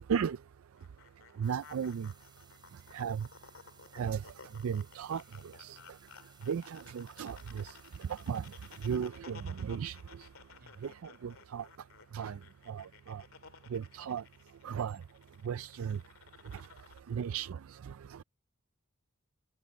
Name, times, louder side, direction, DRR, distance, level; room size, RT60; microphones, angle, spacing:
sound 1, 0.8-17.0, left 5 dB, 70° left, 2.5 m, -56 dB
sound 2, 1.4-9.0, right 6 dB, 20° right, 3.7 m, -62 dB
voice 1, 1.4-2.1 2.9-3.3 3.9-4.2 4.6-5.2 5.6-5.8 6.4-8.5 8.8-10.0 10.8-11.7 12.1-12.4 12.7-13.2 13.7-14.2 14.6-15.0 15.4-16.0 16.5-16.7 17.1-18.2, right 7 dB, 70° right, 0.4 m, -35 dB
voice 2, 2.5-3.0 3.3-4.0 10.6-10.9 16.4-17.3, right 1 dB, 45° right, 5.5 m, -68 dB
head